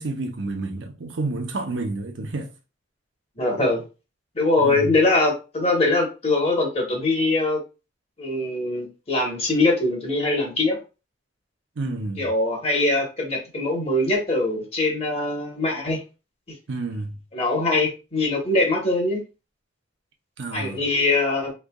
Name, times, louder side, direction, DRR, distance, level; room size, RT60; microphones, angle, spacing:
voice 1, 0.0-2.5 4.6-4.9 11.8-12.3 16.7-17.2 20.4-20.8, right 2 dB, 80° right, 0.7 m, -30 dB
voice 2, 3.4-3.8 4.3-7.6 8.2-10.8 12.2-16.0 17.3-19.2 20.5-21.5, left 2 dB, 35° left, 1.1 m, -22 dB
3.7 x 3.2 x 2.3 m
head